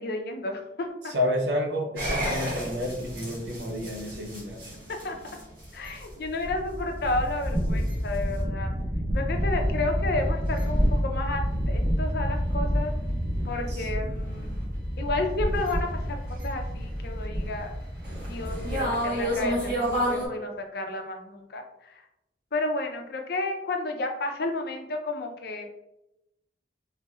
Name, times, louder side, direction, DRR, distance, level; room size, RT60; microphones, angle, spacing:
voice 1, 0.0-1.1 5.0-5.2 5.7-8.7 9.1-12.9 13.4-14.7 15.0-17.7 18.2-21.9 22.5-25.7, left 2 dB, 60° left, 3 dB, 0.5 m, -32 dB
voice 2, 1.0-4.7 13.7-14.1, left 1 dB, 70° right, 1 dB, 0.7 m, -30 dB
sound 1, 2.0-20.3, equal, 55° right, 1.3 m, -29 dB
3.3 x 3.0 x 2.4 m, 0.88 s
head